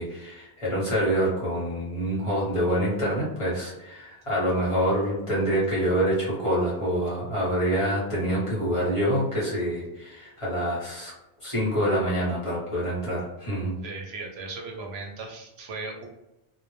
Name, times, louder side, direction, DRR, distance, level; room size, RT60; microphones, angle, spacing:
voice 1, 0.0-11.1 11.4-13.7, equal, 30° left, -7 dB, 0.9 m, -26 dB
voice 2, 13.8-16.1, right 3 dB, 75° right, 1 dB, 0.8 m, -37 dB
2.1 x 2.0 x 3.0 m, 0.94 s
omnidirectional pair, 1.1 m